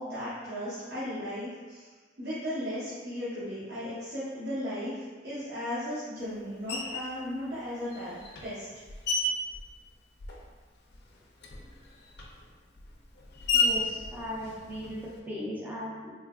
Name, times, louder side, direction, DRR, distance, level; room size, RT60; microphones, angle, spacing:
voice 1, 0.0-1.9 2.2-8.7, equal, 60° right, -11 dB, 0.8 m, -36 dB
Screech, 6.7-7.2 7.9-10.6 10.9-15.2, left 3 dB, 60° left, 0.4 m, -33 dB
voice 2, 13.5-16.1, equal, 10° right, -7 dB, 0.4 m, -37 dB
3.2 x 2.8 x 2.3 m, 1.4 s
head